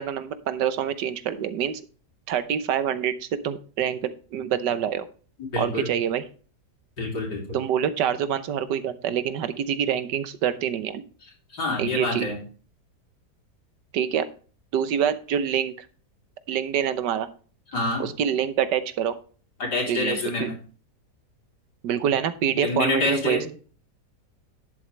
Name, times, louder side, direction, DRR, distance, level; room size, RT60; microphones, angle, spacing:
voice 1, 0.0-1.8 2.3-5.0 5.6-6.2 7.5-11.0 11.8-12.3 13.9-14.3 14.7-15.9 16.5-17.3 18.0-19.1 19.9-20.5 21.8-23.5, right 9 dB, 90° right, 13 dB, 1.5 m, -26 dB
voice 2, 5.5-5.9 7.0-7.6 11.5-12.4 17.7-18.1 19.6-20.6 22.5-23.4, left 2 dB, 75° left, -1 dB, 3.7 m, -27 dB
11.5 x 7.5 x 3.2 m, 0.39 s
omnidirectional pair, 1.8 m